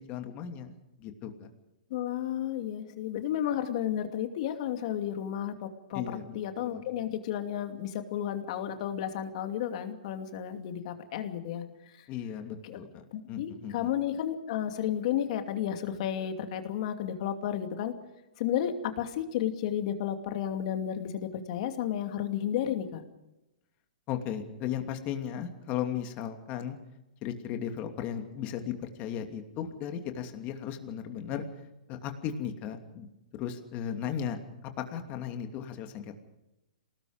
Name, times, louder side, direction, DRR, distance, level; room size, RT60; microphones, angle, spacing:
voice 1, 0.0-1.5 5.9-6.8 12.1-13.0 13.3-13.9 24.1-26.8 27.2-31.5 31.9-33.1 33.3-36.2, left 9 dB, 35° left, 5 dB, 2.8 m, -36 dB
voice 2, 1.9-6.0 6.3-12.1 12.6-12.8 13.1-17.9 18.4-23.0, left 10 dB, 50° left, 6 dB, 2.7 m, -32 dB
27.5 x 19.0 x 5.1 m, 0.96 s
hypercardioid pair, 135°, 4 cm